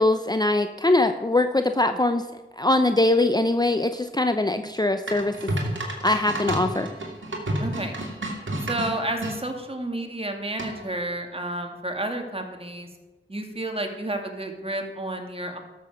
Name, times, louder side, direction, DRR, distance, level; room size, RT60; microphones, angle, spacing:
voice 1, 0.0-2.3 2.6-5.5 6.0-6.9, left 2 dB, 20° left, 8 dB, 0.6 m, -22 dB
sound 1, 5.1-9.4 10.6-11.0, right 1 dB, 65° right, 2.4 m, -30 dB
voice 2, 7.6-7.9 8.7-12.9 13.3-15.6, right 1 dB, 25° right, 3 dB, 2.2 m, -31 dB
12.5 x 7.1 x 6.5 m, 1.1 s
cardioid pair, 45°, 21 cm